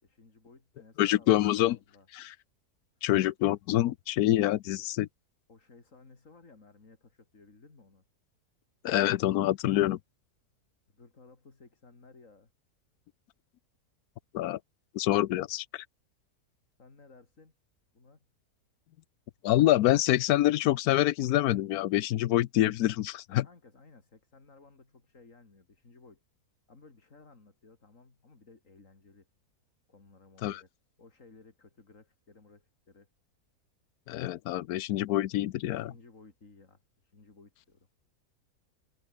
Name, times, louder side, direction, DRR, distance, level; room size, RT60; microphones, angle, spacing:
voice 1, 0.0-2.1 5.5-8.0 10.9-12.5 16.8-17.5 17.9-18.3 23.4-26.2 26.7-29.3 29.9-30.7 31.0-33.1 35.6-37.9, left 3 dB, 55° left, 3.5 m, -57 dB
voice 2, 1.0-1.8 2.1-2.3 3.0-5.1 8.8-10.0 14.3-14.6 14.9-15.8 19.4-23.5 30.4-30.6 34.1-35.9, left 14 dB, 75° left, 1.1 m, -26 dB
omnidirectional pair, 1.6 m